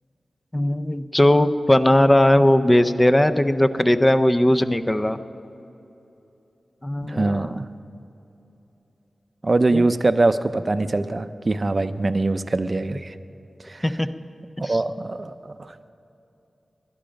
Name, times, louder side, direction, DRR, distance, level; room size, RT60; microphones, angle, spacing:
voice 1, 0.5-5.2 6.8-7.6 9.7-9.8 13.8-14.1 14.6-14.8, left 1 dB, 15° left, 10 dB, 0.5 m, -18 dB
voice 2, 7.0-7.7 9.4-13.1 13.6-13.8 14.6-15.9, right 2 dB, 35° right, 11 dB, 0.5 m, -23 dB
21.0 x 11.5 x 5.2 m, 3.0 s
wide cardioid pair, 130°, 0 cm